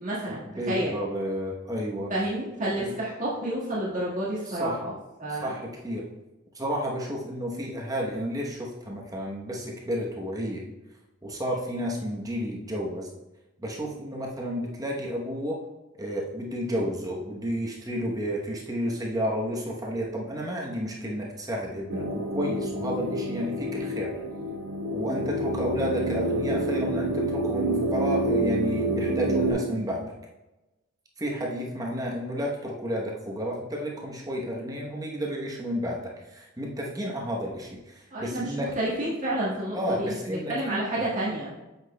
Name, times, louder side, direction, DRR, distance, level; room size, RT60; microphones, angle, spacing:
voice 1, 0.0-0.9 2.1-4.9 5.2-5.5 38.1-41.5, right 1 dB, 35° right, -7 dB, 1.6 m, -30 dB
voice 2, 0.6-2.1 2.8-2.9 4.5-4.8 5.3-6.1 6.5-10.6 11.2-13.1 13.6-15.6 16.0-24.1 24.9-30.1 31.2-38.8 39.7-41.1, equal, 15° right, -2 dB, 0.9 m, -31 dB
sound 1, 21.9-29.5, right 1 dB, 60° right, 1.0 m, -28 dB
8.0 x 6.0 x 2.2 m, 1.0 s
head